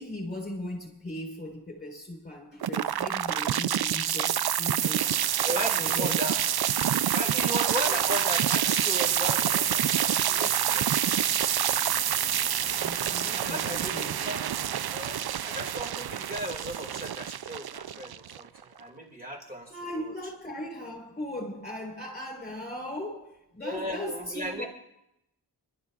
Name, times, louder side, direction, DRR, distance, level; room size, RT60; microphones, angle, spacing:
voice 1, 0.0-5.1 5.8-6.3 7.8-8.2 12.2-12.4 12.8-14.6 19.7-24.7, left 1 dB, 25° left, 4.1 m, -38 dB
sound 1, 2.6-18.6, right 10 dB, 60° right, 0.5 m, -27 dB
voice 2, 5.4-6.4 7.1-9.9 10.2-10.9 13.4-14.4 14.9-20.1 23.6-24.6, equal, 20° right, 2.2 m, -36 dB
30.0 x 12.0 x 2.4 m
wide cardioid pair, 60°, 43 cm